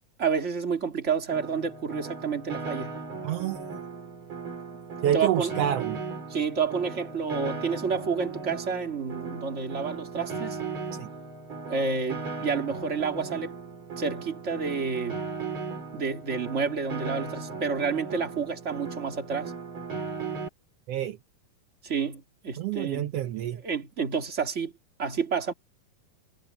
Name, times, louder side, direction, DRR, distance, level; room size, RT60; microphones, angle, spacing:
voice 1, 0.2-2.9 5.1-5.5 6.3-10.6 11.7-13.5 14.0-15.2 15.9-19.5 21.8-23.1 23.6-24.7 25.0-25.5, right 5 dB, 25° right, 2.2 m, -29 dB
Piano, 1.3-20.5, right 4 dB, 40° right, 2.8 m, -37 dB
voice 2, 3.2-3.6 5.0-6.0 11.0-11.1 20.9-21.2 22.6-23.6, right 11 dB, 75° right, 1.4 m, -28 dB
omnidirectional pair, 3.8 m